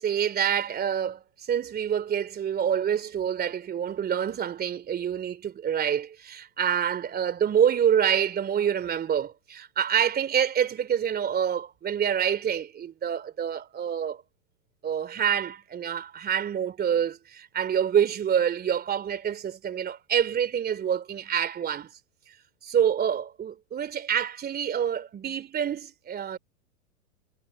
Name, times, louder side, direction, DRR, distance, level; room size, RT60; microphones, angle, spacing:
voice 1, 0.0-14.2 14.8-21.9 22.6-26.4, right 8 dB, 20° right, 2.9 m, -27 dB
hypercardioid pair, 100°, 43 cm